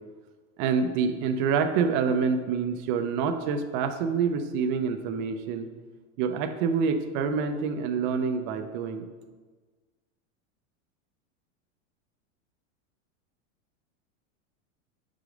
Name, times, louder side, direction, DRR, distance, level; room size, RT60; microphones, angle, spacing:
voice 1, 0.6-5.7 6.2-9.1, right 5 dB, 40° right, 8 dB, 0.5 m, -27 dB
5.0 x 4.6 x 5.1 m, 1.4 s
supercardioid pair, 150°, 39 cm